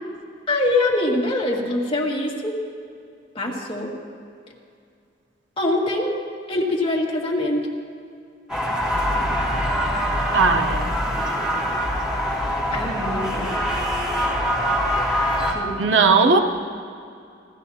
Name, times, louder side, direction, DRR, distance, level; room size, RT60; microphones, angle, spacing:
voice 1, 0.5-2.5 3.4-3.9 5.6-6.1 6.5-7.7 12.7-13.6 15.5-16.0, left 1 dB, 30° left, -3 dB, 2.1 m, -24 dB
sound 1, 8.5-15.5, equal, 5° right, 2.3 m, -23 dB
voice 2, 10.3-10.9 15.8-16.4, right 4 dB, 85° right, 5 dB, 1.0 m, -17 dB
29.0 x 13.0 x 2.8 m, 2.4 s
head